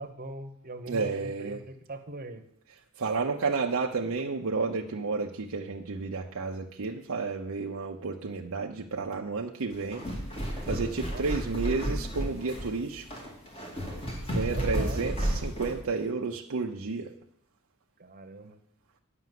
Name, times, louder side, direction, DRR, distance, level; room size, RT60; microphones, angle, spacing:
voice 1, 0.0-2.4 11.1-11.2 14.5-15.0 18.0-18.6, right 2 dB, 40° right, 6 dB, 1.1 m, -41 dB
voice 2, 0.9-1.6 3.0-10.0 10.6-13.0 14.3-17.1, right 4 dB, 70° right, 0 dB, 0.7 m, -31 dB
sound 1, 9.7-15.8, equal, 25° left, 2.4 m, -32 dB
9.4 x 6.0 x 7.7 m, 0.70 s
head